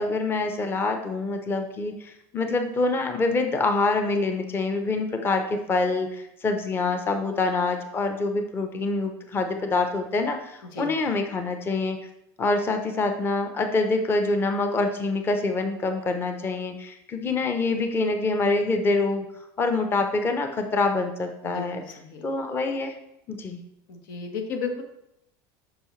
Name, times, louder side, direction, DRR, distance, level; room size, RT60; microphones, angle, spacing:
voice 1, 0.0-12.0 12.4-19.3 19.6-21.8 22.2-23.0 23.3-23.6, left 3 dB, 20° left, 6 dB, 0.7 m, -26 dB
voice 2, 21.4-22.3 23.9-24.8, left 4 dB, 85° left, 4 dB, 1.4 m, -34 dB
9.3 x 5.6 x 3.2 m, 0.82 s
supercardioid pair, 140°, 11 cm